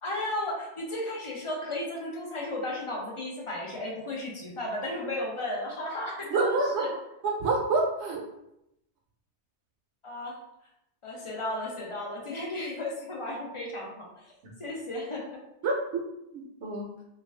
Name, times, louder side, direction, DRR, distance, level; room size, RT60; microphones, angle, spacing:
voice 1, 0.0-6.9 10.0-10.4 11.0-14.3 14.6-15.4, left 1 dB, 55° left, -2 dB, 0.3 m, -34 dB
voice 2, 6.3-6.8 7.2-8.2 14.4-14.5 15.6-16.0 16.3-16.9, right 3 dB, 75° right, -1 dB, 0.8 m, -27 dB
2.4 x 2.2 x 3.1 m, 0.85 s
omnidirectional pair, 1.2 m